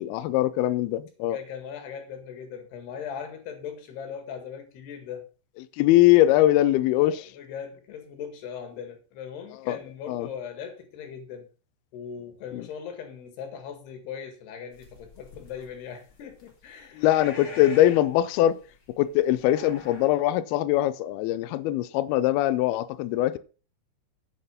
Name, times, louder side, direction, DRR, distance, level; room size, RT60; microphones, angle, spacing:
voice 1, 0.0-1.4 5.8-7.2 9.7-9.8 10.1-10.3 12.5-12.6 17.0-18.6 19.0-23.4, left 14 dB, 90° left, 2.2 m, -22 dB
voice 2, 1.2-5.3 7.0-11.5 11.9-17.9, left 7 dB, 70° left, 3.8 m, -39 dB
sound 1, 14.7-20.1, left 4 dB, 40° left, 1.6 m, -47 dB
8.4 x 7.9 x 5.3 m
omnidirectional pair, 5.2 m